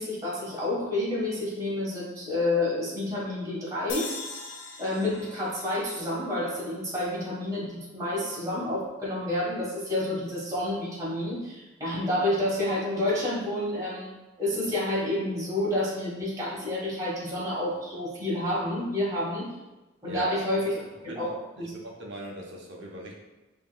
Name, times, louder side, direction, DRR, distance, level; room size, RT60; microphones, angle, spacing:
voice 1, 0.0-4.1 4.8-19.5 20.0-20.8 21.2-21.3 21.6-21.7, left 1 dB, 15° right, -8 dB, 1.3 m, -29 dB
sound 1, 3.9-7.2, left 4 dB, 75° left, 0.6 m, -41 dB
voice 2, 20.1-23.2, right 1 dB, 60° right, -1 dB, 0.8 m, -40 dB
5.5 x 2.9 x 2.2 m, 1.1 s
head